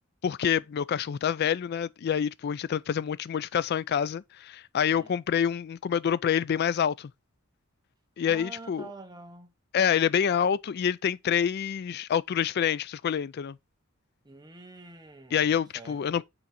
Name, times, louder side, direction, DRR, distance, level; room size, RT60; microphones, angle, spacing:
voice 1, 0.2-7.1 8.2-8.9 9.7-13.6 15.3-16.2, left 8 dB, 50° left, 0.3 m, -27 dB
voice 2, 4.8-5.1 8.3-9.5 14.2-16.2, right 2 dB, 20° right, 0.9 m, -47 dB
5.9 x 3.9 x 4.1 m
head